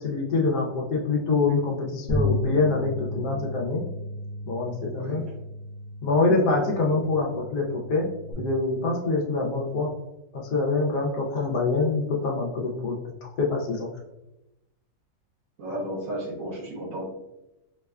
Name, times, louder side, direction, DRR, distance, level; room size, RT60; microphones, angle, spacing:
voice 1, 0.0-3.8 4.5-5.2 6.0-8.1 8.4-9.9 10.3-13.9, left 3 dB, 85° left, -1 dB, 1.2 m, -25 dB
sound 1, 2.1-8.3, left 1 dB, 20° right, 0.3 m, -33 dB
voice 2, 15.6-17.0, right 1 dB, 65° right, -5 dB, 1.1 m, -33 dB
4.7 x 2.1 x 2.3 m, 0.92 s
omnidirectional pair, 1.7 m